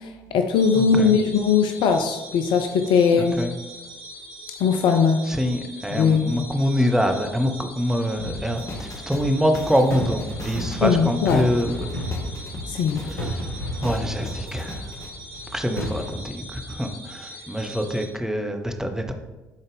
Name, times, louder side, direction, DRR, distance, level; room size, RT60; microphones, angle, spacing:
voice 1, 0.0-3.4 4.6-5.2 5.9-6.4 10.8-11.5 12.7-13.0, left 6 dB, 55° left, 6 dB, 0.5 m, -20 dB
sound 1, 0.5-18.0, equal, 50° right, 2.5 m, -41 dB
voice 2, 0.7-1.1 3.1-3.5 5.3-11.9 13.1-13.5 13.8-14.9 15.5-19.1, equal, 5° right, 4 dB, 0.9 m, -25 dB
sound 2, 8.2-16.1, equal, 85° left, 1.3 m, -34 dB
sound 3, 8.3-15.1, left 2 dB, 35° left, 1.6 m, -37 dB
10.5 x 4.1 x 3.4 m, 1.1 s
figure-of-eight pair, 50°, 10 cm